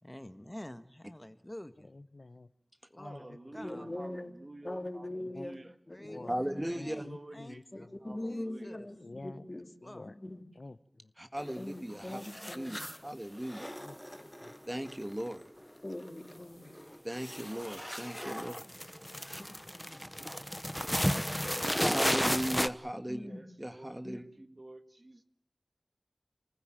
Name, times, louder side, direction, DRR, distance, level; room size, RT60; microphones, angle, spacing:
voice 1, 0.0-1.9 2.9-3.9 5.9-7.9 8.2-8.9 9.8-10.2, left 1 dB, 20° left, 1.5 m, -49 dB
voice 2, 1.9-2.5 3.0-3.4 5.3-5.5 6.0-6.4 6.7-7.9 9.0-9.5 9.8-10.1 10.6-11.1 13.8-14.5, left 2 dB, 70° left, 1.0 m, -49 dB
voice 3, 2.9-5.7 6.5-8.8 23.2-25.2, right 1 dB, 50° right, 1.8 m, -49 dB
voice 4, 3.6-4.4 4.6-5.6 5.9-6.7 7.8-9.0 9.2-9.7 10.2-10.4 11.6-12.9 15.8-17.0 19.4-20.0 23.1-23.4 24.0-24.2, left 1 dB, 45° left, 3.2 m, -42 dB
voice 5, 6.3-7.1 11.2-12.2 12.5-13.7 14.7-15.4 17.0-18.7 21.6-23.3 23.6-24.2, equal, 15° right, 1.9 m, -37 dB
sound 1, 11.4-11.8 12.0-13.1 13.4-15.6 15.9-16.4 16.6-22.7, equal, 5° left, 1.0 m, -34 dB
28.0 x 15.5 x 9.0 m
wide cardioid pair, 40°, 0 cm